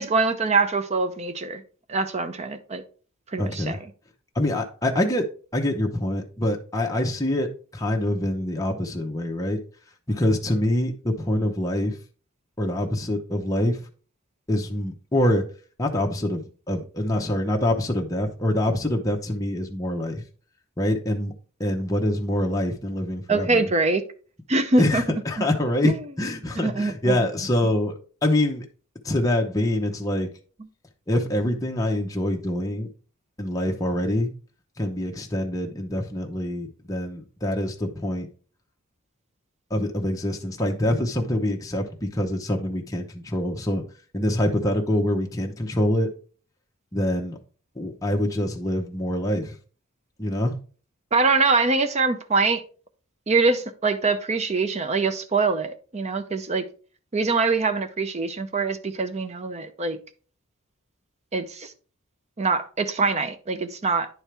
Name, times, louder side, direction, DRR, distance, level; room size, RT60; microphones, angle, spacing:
voice 1, 0.0-1.6 1.9-2.8 3.3-3.8 23.3-24.0 24.5-25.0 25.4-25.5 25.8-26.0 26.5-27.2 51.1-52.6 53.3-56.6 57.1-60.0 61.3-61.7 62.4-64.1, right 3 dB, 30° right, 0.6 m, -23 dB
voice 2, 3.4-3.8 4.4-9.6 10.1-12.0 12.6-13.8 14.5-15.5 15.8-20.2 20.8-21.3 21.6-23.7 24.8-28.6 29.0-30.3 31.1-32.9 33.4-34.3 34.8-38.3 39.7-43.8 44.1-46.1 46.9-47.4 47.8-49.5 50.2-50.6, left 1 dB, 15° left, 0.8 m, -25 dB
10.0 x 4.5 x 3.4 m
head